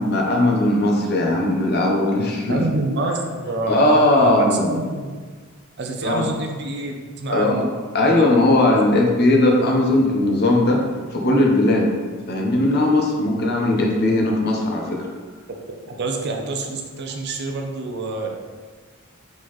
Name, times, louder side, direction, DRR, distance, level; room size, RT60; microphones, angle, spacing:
voice 1, 0.0-2.6 3.7-4.7 6.0-6.3 7.3-7.7 7.9-10.8 11.1-11.9 12.3-15.1, left 1 dB, 50° left, 0 dB, 0.8 m, -18 dB
voice 2, 2.5-5.2 5.8-7.6 8.1-8.2 15.5-18.4, right 2 dB, 55° right, 3 dB, 0.5 m, -27 dB
4.4 x 3.9 x 3.1 m, 1.5 s
head